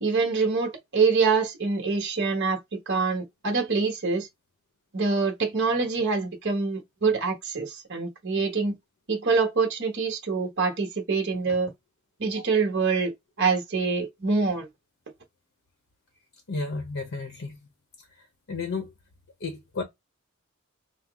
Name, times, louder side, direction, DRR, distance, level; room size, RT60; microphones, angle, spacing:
voice 1, 0.0-4.3 4.9-8.8 9.1-11.7 12.2-13.1 13.4-14.7, right 4 dB, 55° right, 1.2 m, -25 dB
voice 2, 16.5-17.6 18.5-18.9 19.4-19.8, left 3 dB, 65° left, 0.9 m, -32 dB
5.5 x 2.0 x 3.5 m
head